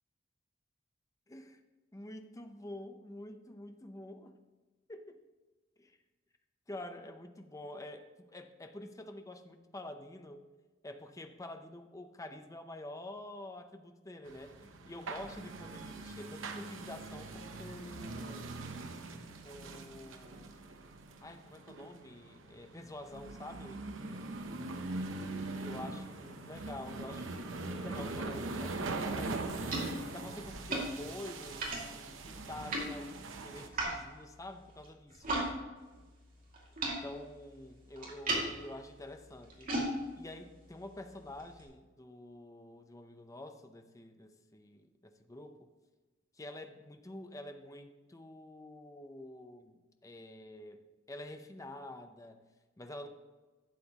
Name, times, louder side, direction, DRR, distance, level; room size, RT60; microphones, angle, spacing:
voice 1, 1.3-1.6 1.9-4.4 4.9-5.2 5.8-6.0 6.7-10.4 10.8-18.6 19.4-20.6 21.2-23.9 25.6-35.4 37.0-45.7 46.3-50.8 51.1-52.4 52.8-53.1, left 1 dB, 15° left, 6 dB, 0.7 m, -48 dB
sound 1, 14.3-33.7, right 2 dB, 70° right, 0.8 m, -42 dB
sound 2, 29.0-35.5 35.8-41.7, right 1 dB, 45° right, 2.4 m, -40 dB
11.5 x 7.6 x 3.0 m, 1.3 s
head